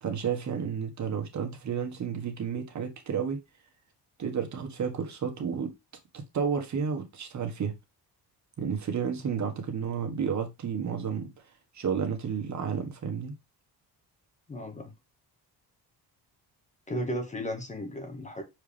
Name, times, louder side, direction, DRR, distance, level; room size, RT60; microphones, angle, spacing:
voice 1, 0.0-3.4 4.2-5.7 6.1-7.8 8.6-11.3 11.7-13.3, right 7 dB, 45° right, 1.5 m, -31 dB
voice 2, 14.5-14.9 16.9-18.4, equal, 20° left, 1.3 m, -34 dB
6.5 x 4.7 x 3.4 m
cardioid pair, 160°, 40 cm